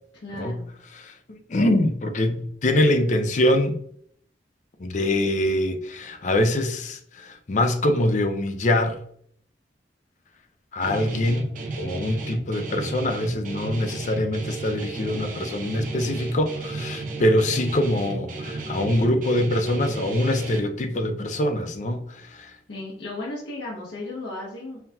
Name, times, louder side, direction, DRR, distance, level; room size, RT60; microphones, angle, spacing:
voice 1, 0.2-0.7 22.7-24.8, left 2 dB, 80° left, -4 dB, 1.0 m, -34 dB
voice 2, 1.0-3.8 4.8-9.0 10.7-11.5 11.8-22.5, left 1 dB, 40° left, 6 dB, 0.5 m, -24 dB
Guitar, 10.8-20.6, right 2 dB, 45° right, 0.7 m, -33 dB
5.6 x 2.8 x 2.3 m, 0.63 s
head